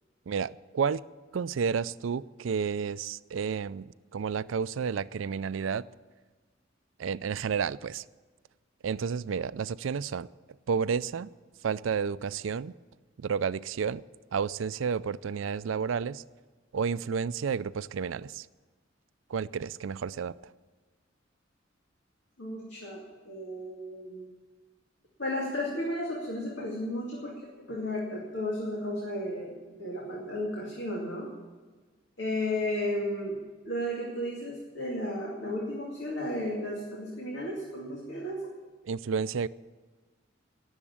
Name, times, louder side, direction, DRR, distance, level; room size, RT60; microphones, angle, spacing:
voice 1, 0.3-1.0 1.3-5.8 7.0-8.0 8.8-10.3 10.7-11.3 11.6-12.7 13.2-14.0 14.3-16.2 16.7-18.5 19.3-20.3 38.9-39.5, right 6 dB, 85° right, 0.4 m, -31 dB
voice 2, 22.4-24.3 25.2-31.3 32.2-33.4 33.7-38.4, left 1 dB, 65° left, 2.5 m, -34 dB
18.0 x 7.3 x 8.7 m
head